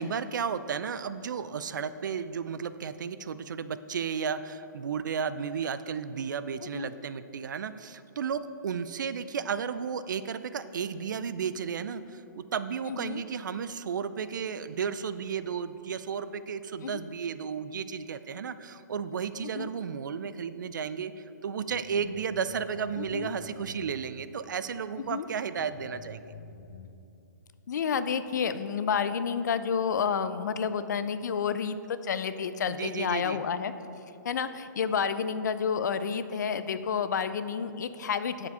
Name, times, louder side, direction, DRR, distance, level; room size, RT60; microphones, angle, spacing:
voice 1, 0.0-26.3 32.7-33.4, right 6 dB, 75° right, 13 dB, 0.4 m, -33 dB
voice 2, 12.8-13.2 16.8-17.0 19.4-19.7 23.0-23.3 25.0-25.3 27.7-33.7 34.2-38.5, left 6 dB, 65° left, 12 dB, 0.5 m, -30 dB
sound 1, 21.7-24.4 25.0-25.1 25.6-26.9, left 2 dB, 80° left, 1.1 m, -48 dB
9.4 x 5.0 x 5.6 m, 2.8 s
hypercardioid pair, 165°, 10 cm